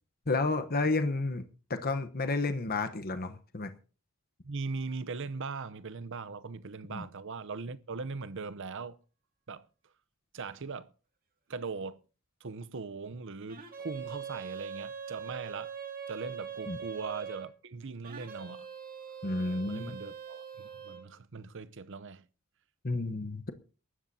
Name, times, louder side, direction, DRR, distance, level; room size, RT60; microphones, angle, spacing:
voice 1, 0.3-1.4 1.7-3.7 6.9-7.0 16.7-16.8 19.2-20.0 22.8-23.5, left 3 dB, 45° left, 1.1 m, -31 dB
voice 2, 4.4-9.0 9.5-9.7 10.3-10.9 11.5-12.0 12.4-15.7 16.1-18.7 19.7-22.2, right 4 dB, 65° right, 0.8 m, -40 dB
sound 1, 13.5-17.5 18.0-21.1, right 7 dB, 45° right, 2.0 m, -42 dB
23.0 x 12.5 x 2.8 m
head